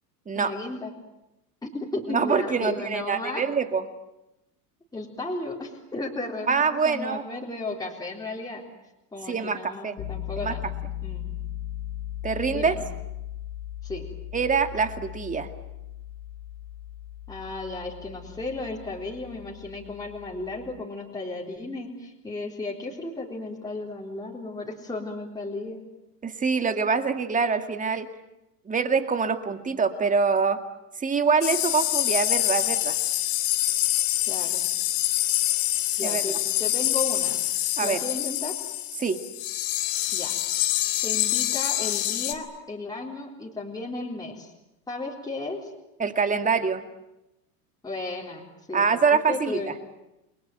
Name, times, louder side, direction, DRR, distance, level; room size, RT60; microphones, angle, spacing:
voice 1, 0.3-0.9 1.6-3.4 4.9-8.6 9.1-10.6 11.0-11.3 12.5-12.9 13.8-14.1 17.3-25.8 34.3-34.6 36.0-37.4 37.8-38.6 40.1-40.4 41.0-44.5 44.9-45.7 47.8-48.9 49.3-49.7, left 2 dB, 10° left, -2 dB, 3.8 m, -34 dB
voice 2, 2.1-3.8 6.5-7.2 9.3-10.0 10.4-10.5 12.2-12.8 14.3-15.5 26.2-28.1 28.7-30.6 31.0-33.0 36.0-36.2 37.8-38.0 39.0-39.2 46.0-46.8 48.7-49.7, right 5 dB, 15° right, 8 dB, 2.1 m, -25 dB
Piano, 10.0-20.8, left 12 dB, 50° left, 2.8 m, -38 dB
sound 1, 31.4-42.3, left 15 dB, 70° left, 2.8 m, -26 dB
29.0 x 21.5 x 9.2 m, 0.91 s
supercardioid pair, 135°, 48 cm